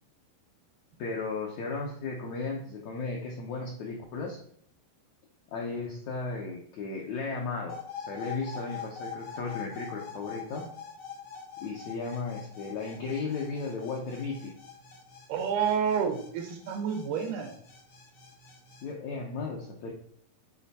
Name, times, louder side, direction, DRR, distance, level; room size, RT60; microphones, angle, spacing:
voice 1, 1.0-4.4 5.5-10.7 11.6-14.5 18.8-19.9, left 4 dB, 75° left, -1 dB, 1.6 m, -35 dB
sound 1, 7.7-18.8, left 6 dB, 55° left, 1.1 m, -44 dB
voice 2, 15.3-17.5, right 7 dB, 90° right, 5 dB, 3.1 m, -29 dB
8.2 x 4.4 x 4.1 m, 0.65 s
omnidirectional pair, 4.3 m